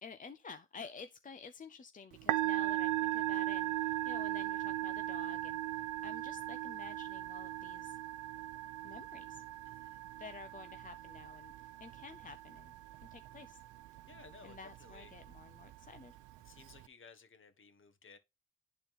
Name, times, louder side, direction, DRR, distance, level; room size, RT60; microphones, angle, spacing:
voice 1, 0.0-8.0 8.8-9.4 10.2-12.7 13.0-13.6 14.4-16.2, left 5 dB, 25° left, 0.6 m, -51 dB
Musical instrument, 2.1-16.9, right 16 dB, 85° right, 0.5 m, -39 dB
voice 2, 9.7-10.0 14.1-15.1 16.4-18.2, left 4 dB, 40° left, 1.6 m, -57 dB
11.0 x 4.2 x 3.7 m
cardioid pair, 90°, 30 cm